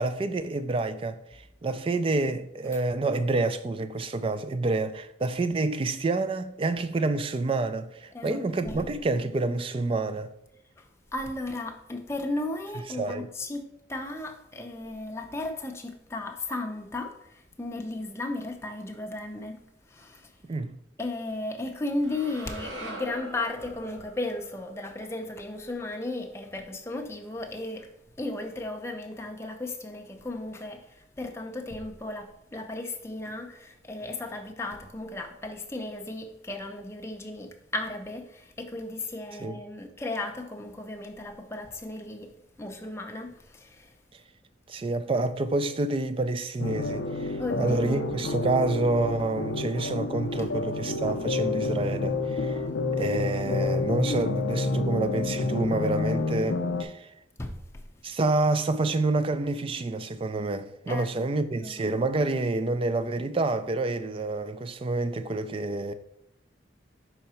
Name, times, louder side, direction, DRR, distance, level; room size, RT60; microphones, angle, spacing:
voice 1, 0.0-10.3 13.0-13.3 20.4-20.7 39.4-39.5 44.7-52.6 52.9-57.1 58.0-65.9, right 2 dB, 30° right, 0.3 m, -28 dB
voice 2, 8.1-8.9 10.8-20.4 21.0-27.9 28.2-43.9 47.4-48.1 57.4-57.8 60.9-61.3 61.6-61.9, left 2 dB, 15° left, 0.6 m, -35 dB
sound 1, 22.0-26.3, right 1 dB, 90° right, 1.3 m, -43 dB
sound 2, 46.6-56.8, left 3 dB, 70° left, 0.5 m, -29 dB
5.7 x 3.9 x 4.3 m
head